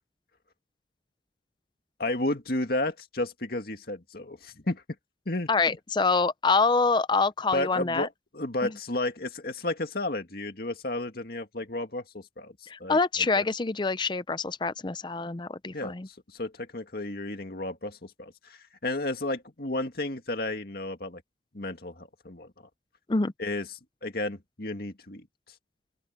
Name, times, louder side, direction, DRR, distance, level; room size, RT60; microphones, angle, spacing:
voice 1, 2.0-4.8 5.3-5.8 7.5-13.0 13.4-13.5 15.7-21.2 21.5-22.5 23.4-23.7 24.0-25.3, left 2 dB, 55° left, 2.1 m, -33 dB
voice 2, 5.5-8.1 8.6-8.7 12.7-16.1 23.1-23.3, left 4 dB, 25° left, 0.5 m, -26 dB
open air
head